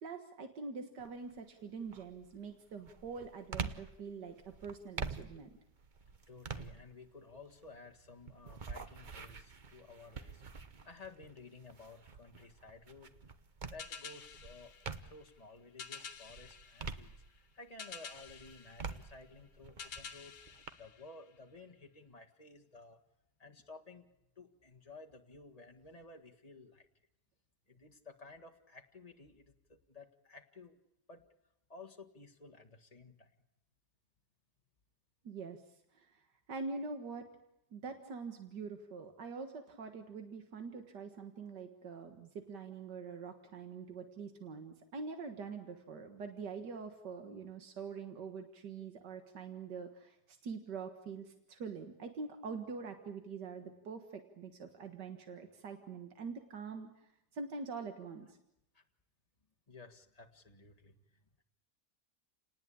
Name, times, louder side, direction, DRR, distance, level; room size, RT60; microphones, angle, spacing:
voice 1, 0.0-4.3 4.6-5.5 35.2-35.6 35.9-36.2 36.5-37.3 37.7-56.9 57.3-58.4, right 4 dB, 90° right, 5 dB, 2.2 m, -44 dB
sound 1, 1.0-1.4 1.9-15.4 15.8-17.7 18.1-20.7, right 5 dB, 35° right, 0.9 m, -46 dB
voice 2, 6.3-13.1 13.7-20.4 20.8-23.0 23.4-24.1 24.4-26.9 27.7-30.8 31.1-31.3 31.7-33.4 58.7-58.8 59.7-61.4, left 3 dB, 20° left, 2 dB, 1.8 m, -55 dB
sound 2, 13.8-21.7, left 6 dB, 85° left, 1.8 m, -51 dB
29.5 x 19.0 x 8.7 m, 0.88 s
omnidirectional pair, 1.8 m